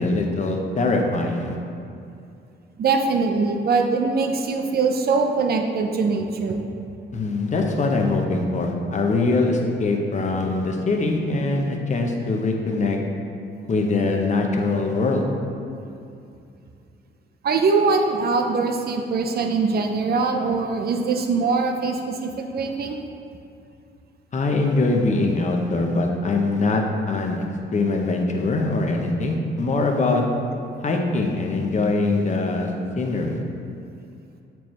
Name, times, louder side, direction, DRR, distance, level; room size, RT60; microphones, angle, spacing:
voice 1, 0.0-1.6 7.1-13.0 13.7-15.2 24.3-27.4 27.7-30.2 30.8-32.7 33.0-33.4, left 3 dB, 35° left, 2 dB, 0.8 m, -22 dB
voice 2, 2.8-6.6 17.4-23.0, right 4 dB, 50° right, 4 dB, 0.6 m, -22 dB
6.9 x 4.5 x 3.2 m, 2.6 s
cardioid pair, 90°, 20 cm